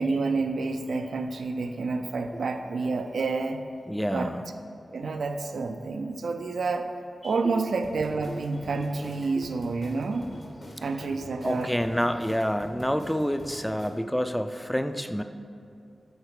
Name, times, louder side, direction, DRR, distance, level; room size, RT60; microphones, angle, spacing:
voice 1, 0.0-3.6 4.1-4.3 4.9-6.9 7.2-10.2 10.8-11.8, right 3 dB, 80° right, 6 dB, 0.4 m, -29 dB
voice 2, 3.9-4.4 7.2-7.3 7.6-7.7 8.3-8.4 9.4-9.5 11.4-15.2, equal, 5° left, 9 dB, 0.4 m, -28 dB
sound 1, 7.8-13.9, left 1 dB, 60° left, 1.4 m, -45 dB
8.0 x 4.2 x 4.9 m, 2.5 s
cardioid pair, 55°, 0 cm